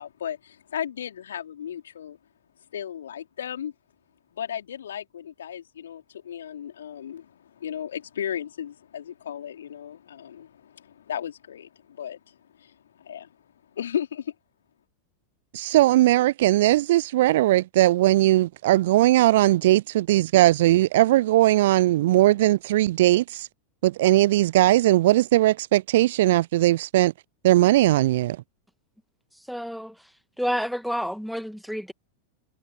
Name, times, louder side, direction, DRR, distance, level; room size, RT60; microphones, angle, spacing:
voice 1, 0.0-2.2 2.7-3.7 4.3-13.4 13.7-14.3, left 9 dB, 65° left, 4.3 m, -35 dB
voice 2, 15.5-23.5 23.8-27.1 27.4-28.4, right 15 dB, 55° right, 0.4 m, -19 dB
voice 3, 29.5-29.9 30.4-31.9, equal, ahead, 2.2 m, -29 dB
figure-of-eight pair, 90°, 0 cm